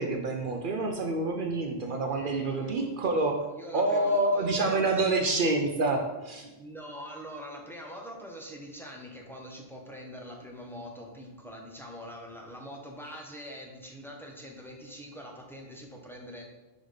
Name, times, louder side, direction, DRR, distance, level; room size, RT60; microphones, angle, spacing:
voice 1, 0.0-3.3 3.7-6.5, right 2 dB, 60° right, 3 dB, 0.8 m, -27 dB
voice 2, 2.1-2.9 3.5-5.1 6.6-16.4, equal, ahead, -1 dB, 0.8 m, -44 dB
4.9 x 4.0 x 5.1 m, 1.1 s
omnidirectional pair, 1.0 m